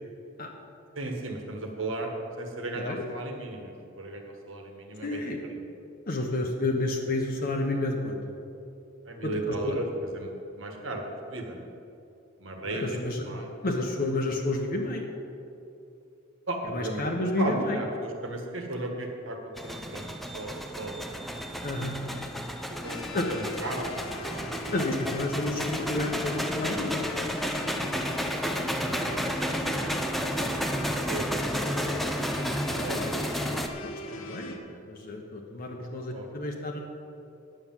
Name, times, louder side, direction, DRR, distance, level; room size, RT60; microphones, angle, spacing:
voice 1, 0.9-2.1 2.4-5.6 9.0-9.9 10.1-11.0 11.3-11.6 12.4-13.5 16.5-20.0 20.3-21.1 22.7-24.8 29.0-29.3 30.1-30.6 31.1-33.1 35.7-36.4, right 2 dB, 65° right, 3 dB, 1.5 m, -36 dB
voice 2, 5.0-5.4 6.1-8.2 9.2-9.7 12.6-13.3 13.6-15.1 16.7-17.8 21.6-22.0 23.1-23.3 24.7-27.1 32.9-33.2 33.8-36.8, left 2 dB, 45° left, 0 dB, 1.0 m, -30 dB
sound 1, 19.6-33.7, equal, ahead, 0.6 m, -32 dB
sound 2, 22.8-34.6, left 3 dB, 80° left, 1.0 m, -41 dB
10.0 x 7.6 x 7.3 m, 2.7 s
head